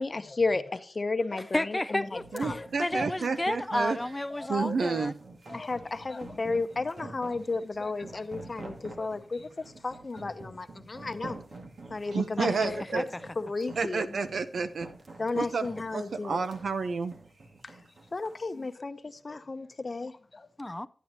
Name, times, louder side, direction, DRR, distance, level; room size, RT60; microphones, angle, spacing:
voice 1, 0.0-2.0 2.4-2.6 4.6-4.7 5.5-9.4 9.8-11.4 11.9-13.0 13.4-14.0 15.2-16.4 18.1-19.0 19.2-20.1, left 3 dB, 40° left, 0.8 m, -33 dB
voice 2, 1.4-5.1 12.4-12.7 13.0-13.1 20.6-20.9, left 1 dB, 20° left, 0.4 m, -32 dB
sound 1, 2.2-18.4, right 2 dB, 70° right, 2.0 m, -47 dB
voice 3, 2.3-4.0 4.5-5.1 12.1-13.1 13.7-14.9 15.3-17.2, right 5 dB, 90° right, 0.7 m, -30 dB
12.0 x 9.2 x 2.9 m
wide cardioid pair, 95°, 0 cm